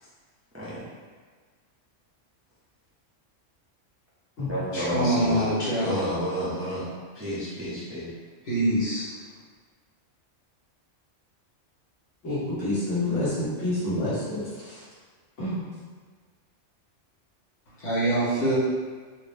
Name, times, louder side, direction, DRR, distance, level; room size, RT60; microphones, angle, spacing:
voice 1, 0.5-0.9 4.5-5.5 5.8-6.8 7.1-8.1, equal, 15° right, -9 dB, 0.5 m, -30 dB
voice 2, 4.7-6.0 8.4-9.1 17.8-18.6, right 1 dB, 40° left, -8 dB, 1.1 m, -24 dB
voice 3, 12.2-14.8 15.4-15.6, left 1 dB, 80° left, -11 dB, 1.7 m, -28 dB
4.2 x 2.0 x 3.3 m, 1.5 s
omnidirectional pair, 1.3 m